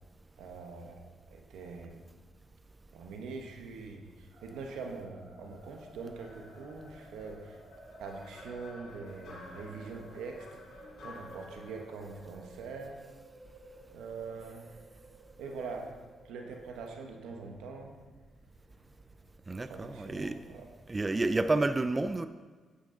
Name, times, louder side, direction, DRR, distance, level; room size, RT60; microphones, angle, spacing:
voice 1, 0.4-1.0 1.3-2.1 2.9-7.6 8.0-10.5 11.0-13.0 13.9-14.7 15.4-16.0 16.2-18.0 19.7-20.7, right 4 dB, 90° right, 3 dB, 1.2 m, -43 dB
sound 1, 4.3-21.7, right 1 dB, 70° right, 3.1 m, -56 dB
sound 2, 6.2-13.3, left 2 dB, 70° left, 2.8 m, -53 dB
voice 2, 19.5-20.4 20.9-22.3, right 2 dB, 25° right, 11 dB, 0.4 m, -30 dB
10.0 x 8.3 x 3.9 m, 1.4 s
cardioid pair, 75°, 0 cm